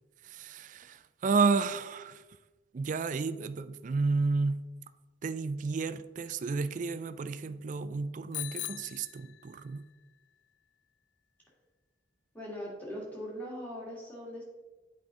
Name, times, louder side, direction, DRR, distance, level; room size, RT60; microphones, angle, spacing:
voice 1, 0.2-2.2 2.7-4.6 5.2-9.9, right 4 dB, 45° right, 13 dB, 0.3 m, -31 dB
Bicycle bell, 8.3-9.9, left 17 dB, 65° left, 0.3 m, -41 dB
voice 2, 12.3-14.4, equal, 10° left, -5 dB, 2.0 m, -40 dB
8.3 x 4.9 x 3.8 m, 1.2 s
head